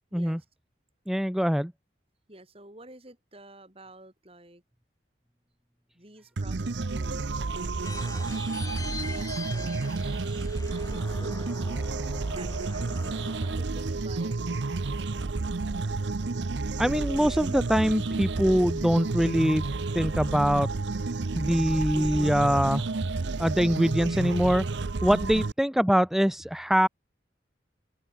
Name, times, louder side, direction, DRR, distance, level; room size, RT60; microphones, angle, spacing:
voice 1, 0.1-0.5 2.3-4.6 5.9-8.0 9.0-10.2 10.9-11.9 12.3-13.1 13.4-14.5, right 1 dB, 30° right, 7.3 m, -50 dB
voice 2, 1.1-1.7 16.8-19.6 19.9-20.7 21.3-22.8 23.4-24.6 25.0-26.9, equal, ahead, 0.4 m, -23 dB
sound 1, 6.4-25.5, right 3 dB, 75° right, 0.7 m, -30 dB
sound 2, 7.8-13.6, left 3 dB, 20° left, 3.9 m, -42 dB
head